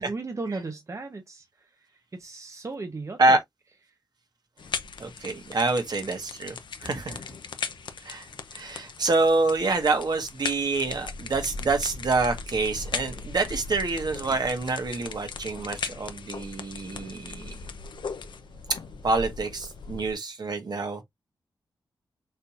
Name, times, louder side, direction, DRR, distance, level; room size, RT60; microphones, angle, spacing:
voice 1, 0.0-1.4 2.2-3.4, right 3 dB, 35° right, 1.0 m, -35 dB
sound 1, 4.6-20.1, left 5 dB, 70° left, 0.8 m, -38 dB
voice 2, 5.0-7.2 8.0-17.6 19.0-21.0, right 3 dB, 55° right, 1.6 m, -26 dB
6.5 x 3.2 x 2.6 m
cardioid pair, 65°, 8 cm